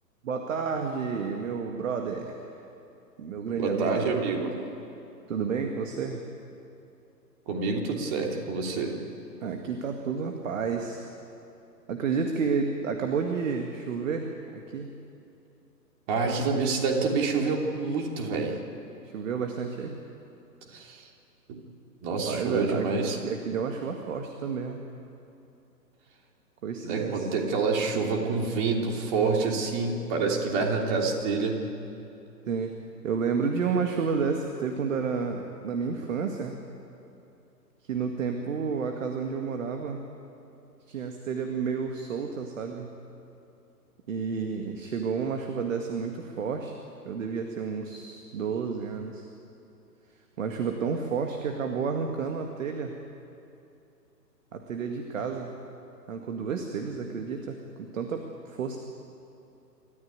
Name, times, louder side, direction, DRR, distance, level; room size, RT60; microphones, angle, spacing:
voice 1, 0.2-2.5 3.2-4.1 5.3-6.2 9.4-11.0 11.9-14.3 14.7-14.9 19.0-20.0 22.3-22.9 23.2-24.8 26.6-27.3 32.5-32.8 33.0-36.6 37.8-40.0 40.9-42.9 44.1-46.7 47.0-49.3 50.4-53.0 54.5-55.5 56.1-58.8, right 5 dB, 50° right, 4 dB, 2.0 m, -31 dB
voice 2, 3.6-4.5 7.5-8.9 16.1-18.5 20.7-21.1 21.5-21.6 22.0-23.2 26.8-31.6, right 4 dB, 30° right, 1 dB, 3.2 m, -27 dB
27.0 x 14.0 x 9.4 m, 2.8 s
figure-of-eight pair, 135°, 49 cm